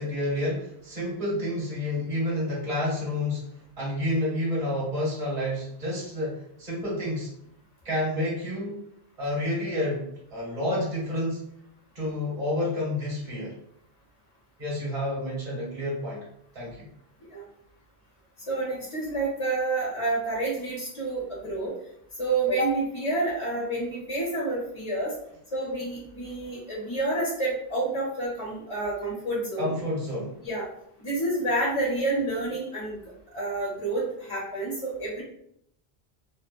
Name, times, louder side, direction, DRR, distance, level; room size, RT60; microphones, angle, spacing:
voice 1, 0.0-3.5 3.8-7.3 7.8-8.8 9.2-11.5 11.9-13.6 14.6-16.3 16.5-16.9 29.6-30.4, left 1 dB, 35° right, -6 dB, 1.0 m, -29 dB
voice 2, 18.5-21.7 22.2-25.1 25.5-29.7 30.4-30.6 31.0-33.0 33.3-35.2, right 2 dB, 40° left, -5 dB, 0.6 m, -29 dB
2.7 x 2.1 x 2.4 m, 0.73 s
omnidirectional pair, 1.1 m